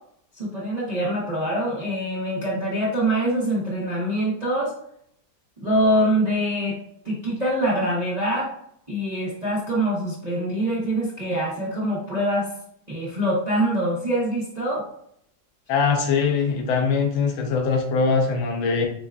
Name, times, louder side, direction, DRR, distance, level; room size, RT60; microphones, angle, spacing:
voice 1, 0.3-4.7 5.6-6.8 7.0-8.5 8.9-12.5 12.9-14.8, right 1 dB, 55° right, -7 dB, 0.4 m, -24 dB
voice 2, 15.7-18.9, left 5 dB, 85° left, 3 dB, 1.4 m, -22 dB
6.6 x 2.4 x 2.2 m, 0.71 s
omnidirectional pair, 2.1 m